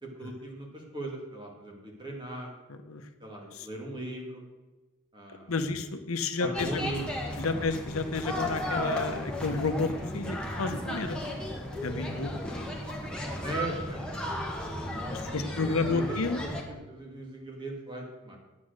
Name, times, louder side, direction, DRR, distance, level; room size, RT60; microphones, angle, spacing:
voice 1, 0.0-2.5 3.2-4.4 5.1-5.5 6.4-7.0 7.5-7.7 13.4-14.0 15.3-15.5 15.7-16.0 16.4-18.4, right 1 dB, 20° right, 0 dB, 2.1 m, -39 dB
voice 2, 2.7-3.1 3.5-3.7 5.5-6.8 7.4-11.2 11.8-12.3 15.1-16.4, left 3 dB, 85° left, 9 dB, 0.9 m, -31 dB
sound 1, 6.5-16.6, left 1 dB, 5° left, 1.5 m, -34 dB
9.5 x 8.5 x 6.5 m, 1.2 s
head